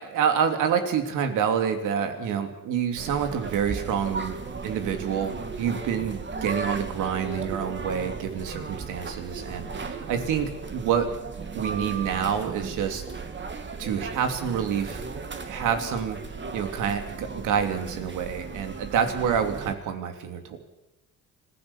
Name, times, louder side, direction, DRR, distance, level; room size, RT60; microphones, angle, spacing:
voice 1, 0.0-4.4 4.6-11.1 11.5-13.0 13.8-15.0 15.4-16.2 16.5-20.6, right 7 dB, 90° right, 6 dB, 2.9 m, -27 dB
sound 1, 3.0-19.7, right 4 dB, 40° right, 2.5 m, -36 dB
26.0 x 16.0 x 7.2 m, 0.91 s
cardioid pair, 90°, 30 cm